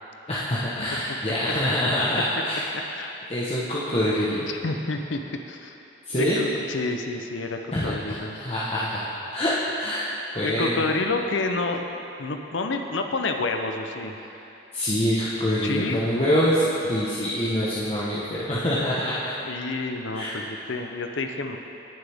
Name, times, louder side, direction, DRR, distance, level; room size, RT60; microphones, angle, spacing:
voice 1, 0.3-2.6 3.3-4.4 6.1-6.4 7.7-9.0 9.3-10.1 10.3-10.8 14.7-19.3 20.1-20.4, equal, 30° left, -9 dB, 1.2 m, -25 dB
voice 2, 4.3-5.2 5.5-5.8 6.2-8.4 10.4-14.2 15.6-16.0 19.4-21.6, left 3 dB, 75° left, 5 dB, 0.7 m, -29 dB
18.5 x 7.6 x 3.6 m, 3.0 s
head